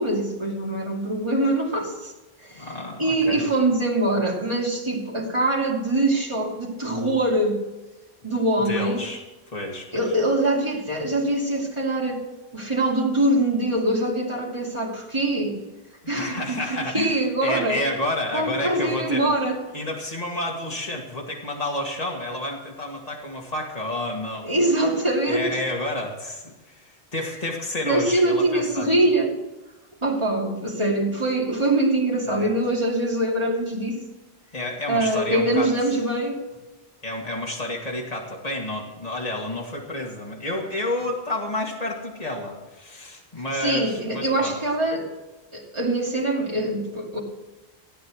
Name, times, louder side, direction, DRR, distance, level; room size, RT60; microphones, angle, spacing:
voice 1, 0.0-2.1 2.4-2.7 3.0-7.6 8.2-9.0 9.9-12.2 12.5-15.6 16.1-16.6 16.9-17.8 18.3-19.6 24.4-25.6 27.8-29.3 30.0-34.0 34.9-36.4 43.6-45.1 45.5-47.2, right 1 dB, 25° right, -3 dB, 2.8 m, -23 dB
voice 2, 2.5-3.4 8.6-9.2 9.5-10.0 16.0-19.3 19.7-24.5 25.3-28.9 32.3-32.5 34.5-35.7 37.0-44.6, left 1 dB, 35° left, -1 dB, 2.4 m, -30 dB
15.5 x 9.4 x 6.4 m, 1.1 s
omnidirectional pair, 1.1 m